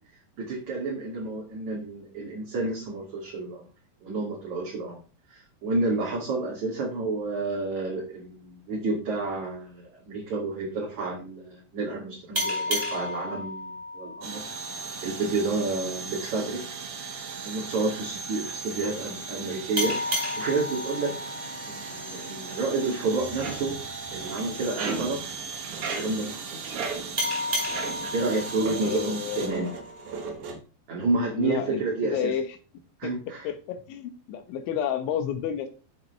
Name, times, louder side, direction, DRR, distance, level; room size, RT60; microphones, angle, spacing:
voice 1, 0.4-3.7 4.0-5.0 5.3-14.5 15.0-16.6 17.0-17.1 17.4-20.0 20.4-21.1 21.7-23.8 24.1-25.4 25.7-26.7 28.1-29.7 30.9-32.3 33.0-33.5, right 3 dB, 45° right, -3 dB, 3.6 m, -30 dB
sound 1, 12.3-15.6 19.8-23.0 27.2-30.1, left 1 dB, 10° right, 3.3 m, -33 dB
sound 2, 14.2-29.5, right 5 dB, 75° right, 4.3 m, -38 dB
sound 3, 23.2-28.3 28.6-28.9 29.3-30.6, right 4 dB, 60° right, 2.1 m, -36 dB
voice 2, 28.8-29.8 31.3-32.5 33.0-33.1 33.5-35.7, left 9 dB, 85° left, 7 dB, 3.7 m, -30 dB
13.5 x 7.6 x 3.3 m, 0.35 s
omnidirectional pair, 5.3 m